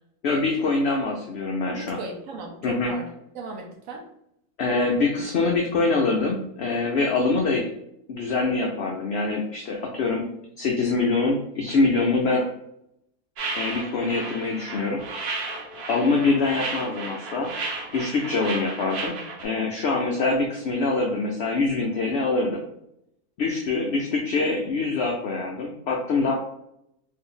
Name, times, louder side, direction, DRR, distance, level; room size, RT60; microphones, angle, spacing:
voice 1, 0.2-2.0 2.6-2.9 4.6-7.6 8.1-10.2 10.6-12.5 13.5-15.0 15.9-17.5 17.9-19.2 19.4-22.6 23.4-26.3, left 3 dB, 85° left, 0 dB, 0.5 m, -24 dB
voice 2, 1.7-4.1, right 3 dB, 65° right, 1 dB, 0.9 m, -37 dB
sound 1, 13.4-19.5, right 3 dB, 80° right, 1.2 m, -33 dB
2.7 x 2.5 x 3.7 m, 0.77 s
omnidirectional pair, 1.6 m